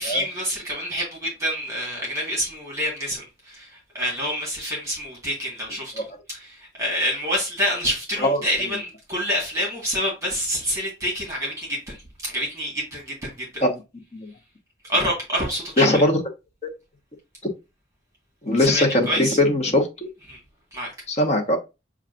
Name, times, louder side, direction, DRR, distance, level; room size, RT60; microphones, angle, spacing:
voice 1, 0.0-3.7 3.9-12.0 12.2-13.6 14.9-16.0 18.6-19.4 20.3-20.4 20.7-20.9, equal, 15° right, 1.6 m, -27 dB
voice 2, 8.2-8.7 13.6-13.8 14.1-14.3 15.8-16.2 18.4-20.1 21.1-21.6, left 1 dB, 40° left, 0.9 m, -21 dB
7.0 x 2.4 x 2.5 m
head